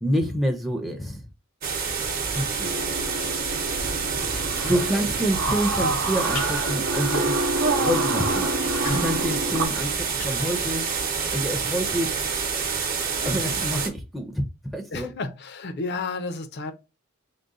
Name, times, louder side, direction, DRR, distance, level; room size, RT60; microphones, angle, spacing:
voice 1, 0.0-1.3 2.3-2.8 3.5-3.7 4.1-4.3 4.7-7.4 7.8-10.8 11.3-12.1 13.2-14.4 14.7-15.1, equal, ahead, 0.6 m, -27 dB
sound 1, 1.6-13.9, right 5 dB, 45° right, 0.9 m, -28 dB
sound 2, 2.6-9.7, right 2 dB, 70° right, 0.8 m, -28 dB
sound 3, 6.3-6.5 7.0-7.2 7.6-7.7 7.9-8.0 8.5-11.1, left 1 dB, 90° left, 1.5 m, -37 dB
voice 2, 14.9-16.7, left 3 dB, 50° left, 0.6 m, -32 dB
3.8 x 2.2 x 3.6 m
head